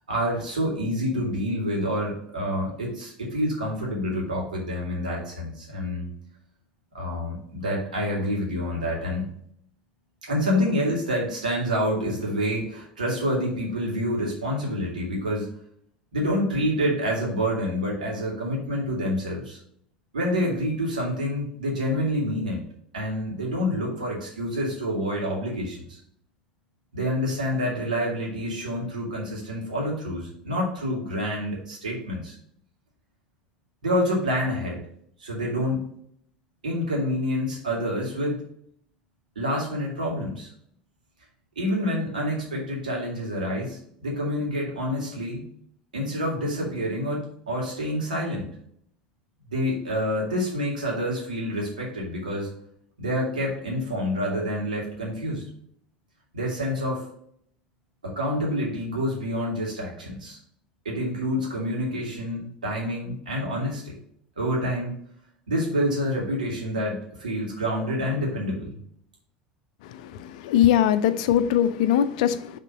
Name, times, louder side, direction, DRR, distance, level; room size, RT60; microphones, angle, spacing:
voice 1, 0.1-6.1 6.9-9.3 10.2-15.5 16.1-19.6 20.1-22.6 22.9-26.0 26.9-32.4 33.8-34.8 35.2-35.9 36.6-38.4 39.4-40.5 41.6-45.4 45.9-48.5 49.5-52.5 53.0-55.5 56.3-57.0 58.0-60.4 60.8-64.0 64.4-64.9 65.5-68.8, equal, 75° right, -2 dB, 2.2 m, -27 dB
voice 2, 70.0-72.6, left 10 dB, 60° left, 13 dB, 0.5 m, -21 dB
6.6 x 3.6 x 5.1 m, 0.67 s
figure-of-eight pair, 70°, 4 cm